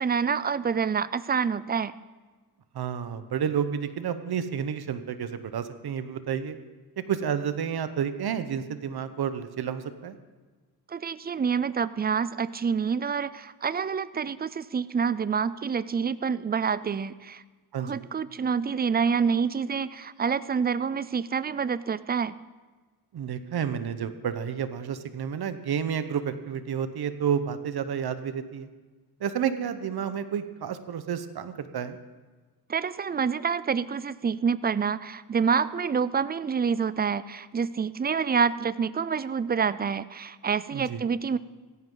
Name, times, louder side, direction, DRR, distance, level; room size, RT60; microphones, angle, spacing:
voice 1, 0.0-1.9 10.9-17.4 17.8-22.4 32.7-41.4, right 6 dB, 25° right, 17 dB, 0.4 m, -27 dB
voice 2, 2.7-6.6 7.1-10.2 17.7-18.0 23.1-28.7 29.2-32.0 40.7-41.0, right 8 dB, 70° right, 11 dB, 1.1 m, -30 dB
16.5 x 15.5 x 3.9 m, 1.3 s
cardioid pair, 100°, 40 cm